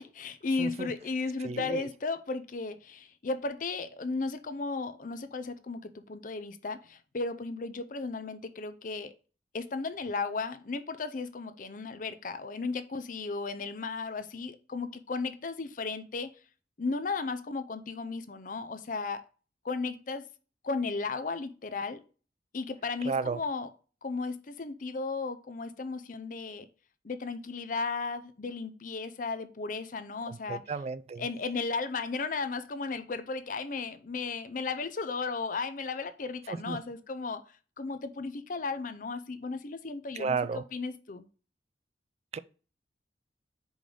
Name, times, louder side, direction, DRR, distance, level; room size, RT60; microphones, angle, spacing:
voice 1, 0.0-9.1 9.5-16.3 16.8-19.2 19.6-20.3 20.6-22.0 22.5-23.7 24.0-26.7 27.0-30.6 31.2-37.4 37.8-41.2, left 4 dB, 50° left, 0.5 m, -35 dB
voice 2, 1.4-1.8 23.1-23.4 30.3-31.3 36.5-36.8 40.2-40.6 42.3-42.4, right 5 dB, 35° right, 0.3 m, -33 dB
5.1 x 3.8 x 5.0 m
head